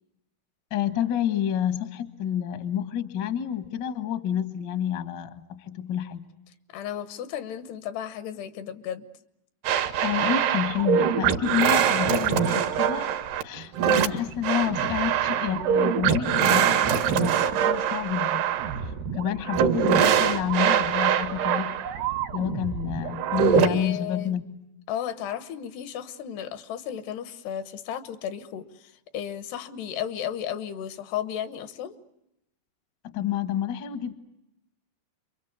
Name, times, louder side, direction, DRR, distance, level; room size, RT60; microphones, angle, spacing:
voice 1, 0.7-6.2 10.0-13.1 13.4-18.4 18.8-21.8 22.3-24.5 33.1-34.2, left 10 dB, 65° left, 9 dB, 1.1 m, -29 dB
voice 2, 6.7-9.1 23.5-24.4 24.9-32.0, left 9 dB, 85° left, 11 dB, 3.3 m, -34 dB
sound 1, 9.7-23.7, right 9 dB, 80° right, 3.5 m, -24 dB
29.0 x 24.0 x 8.1 m, 0.85 s
omnidirectional pair, 4.6 m